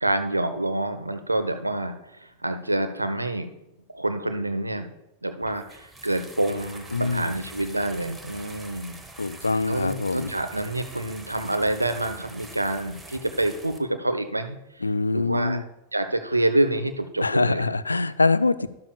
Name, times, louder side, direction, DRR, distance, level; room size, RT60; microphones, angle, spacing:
voice 1, 0.0-3.5 3.9-4.9 5.2-9.0 9.7-15.6 15.9-17.7 18.6-18.7, right 1 dB, 85° right, 8 dB, 0.7 m, -27 dB
sound 1, 5.4-13.8, right 2 dB, 10° right, 1.1 m, -44 dB
voice 2, 6.9-7.4 9.2-10.3 14.8-15.6 17.2-18.7, left 3 dB, 80° left, 16 dB, 0.3 m, -24 dB
12.0 x 11.5 x 2.3 m, 0.91 s
figure-of-eight pair, 90°, 0 cm